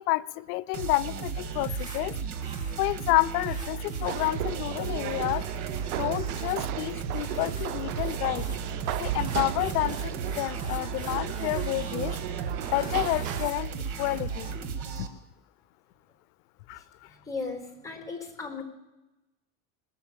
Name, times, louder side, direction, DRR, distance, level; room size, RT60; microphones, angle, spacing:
voice 1, 0.0-2.1 2.8-5.5 6.0-8.5 9.0-12.2 12.6-13.7 14.0-14.6 15.0-15.1 16.7-16.8, left 19 dB, 90° left, 20 dB, 0.6 m, -29 dB
sound 1, 0.7-15.1, right 6 dB, 70° right, 1.9 m, -35 dB
sound 2, 1.0-14.7, right 2 dB, 15° right, 2.7 m, -47 dB
sound 3, 4.1-13.5, right 15 dB, 85° right, 0.6 m, -36 dB
voice 2, 17.2-18.6, left 4 dB, 10° left, 2 dB, 4.0 m, -36 dB
20.5 x 7.0 x 7.4 m, 1.0 s
supercardioid pair, 125°, 44 cm